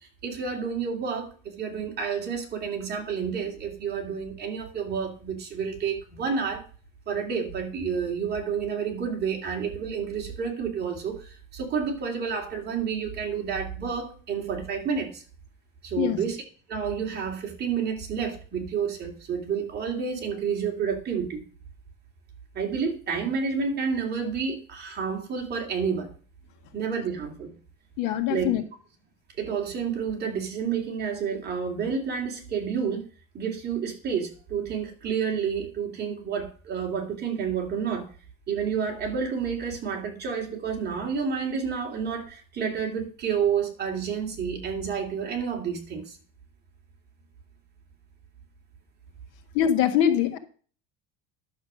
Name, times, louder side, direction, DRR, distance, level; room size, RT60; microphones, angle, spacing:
voice 1, 0.2-6.6 7.1-15.2 15.8-16.4 16.7-21.4 22.5-26.1 26.7-27.6 28.3-28.5 29.4-33.0 33.3-38.1 38.5-46.2, right 6 dB, 30° right, 1 dB, 2.8 m, -30 dB
voice 2, 28.0-28.6 49.5-50.4, left 10 dB, 70° left, 8 dB, 1.8 m, -23 dB
11.0 x 7.2 x 6.2 m, 0.41 s
cardioid pair, 160°, 32 cm